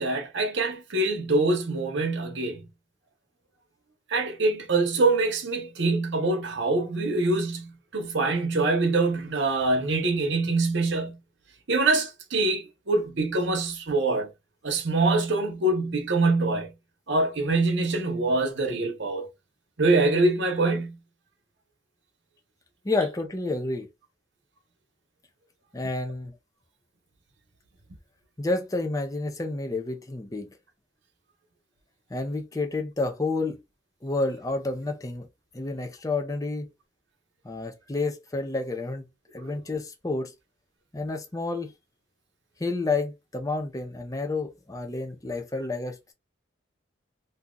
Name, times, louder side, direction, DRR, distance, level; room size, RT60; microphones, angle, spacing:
voice 1, 0.0-2.6 4.1-11.2 11.7-14.3 14.6-16.7 17.1-19.3 19.8-21.0 39.4-39.5, right 2 dB, 70° right, 0.9 m, -24 dB
voice 2, 22.8-23.9 25.7-26.3 28.4-30.5 32.1-33.6 34.0-35.3 35.5-36.7 37.4-39.1 39.3-40.3 40.9-41.7 42.6-46.1, left 3 dB, 20° left, 0.5 m, -30 dB
2.7 x 2.3 x 3.7 m
head